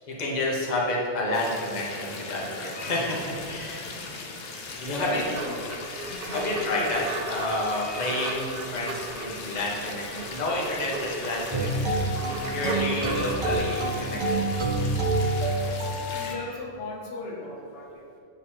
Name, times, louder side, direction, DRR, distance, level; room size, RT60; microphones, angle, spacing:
voice 1, 0.1-3.9 4.8-5.2 5.9-12.0 12.5-14.6 16.1-16.5, left 1 dB, 40° left, -3 dB, 1.0 m, -30 dB
sound 1, 1.3-16.3, left 3 dB, 65° left, 0.9 m, -39 dB
voice 2, 3.8-4.3 4.9-5.7 6.1-6.6 13.0-13.4 15.3-15.4 16.0-18.2, left 1 dB, 80° left, -1 dB, 1.2 m, -37 dB
sound 2, 5.0-15.5, right 2 dB, 55° right, 1.0 m, -37 dB
sound 3, 11.5-16.4, right 2 dB, 40° right, 0.4 m, -27 dB
8.8 x 3.0 x 4.3 m, 2.4 s
omnidirectional pair, 1.2 m